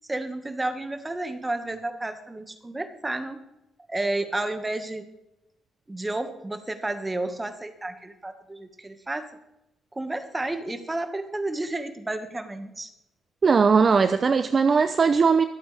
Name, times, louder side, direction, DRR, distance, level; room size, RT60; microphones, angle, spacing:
voice 1, 0.1-3.4 3.9-5.1 5.9-9.3 9.9-12.9, right 2 dB, 15° right, 8 dB, 1.8 m, -31 dB
voice 2, 13.4-15.4, right 5 dB, 40° right, 10 dB, 0.7 m, -19 dB
24.5 x 8.9 x 3.5 m, 0.87 s
cardioid pair, 90°, 0 cm